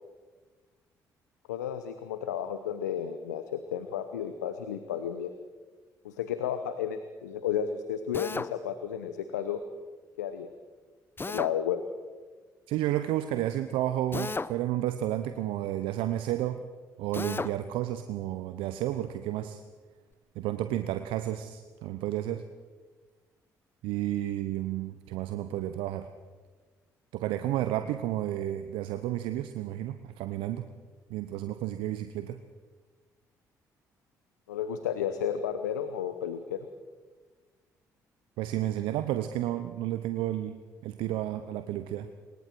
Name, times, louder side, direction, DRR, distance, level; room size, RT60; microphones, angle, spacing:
voice 1, 1.5-5.3 6.0-9.6 10.2-10.5 11.3-11.8 34.5-36.7, left 9 dB, 85° left, 10 dB, 0.9 m, -32 dB
Drill, 8.1-8.5 11.2-11.5 14.1-14.6 17.1-17.5, left 3 dB, 25° left, 0.8 m, -33 dB
voice 2, 12.7-16.6 17.0-19.6 20.4-22.4 23.8-26.1 27.1-30.7 31.1-32.4 38.4-40.6 40.8-42.1, right 13 dB, 70° right, 10 dB, 0.8 m, -31 dB
25.5 x 23.0 x 4.6 m, 1.4 s
hypercardioid pair, 45°, 9 cm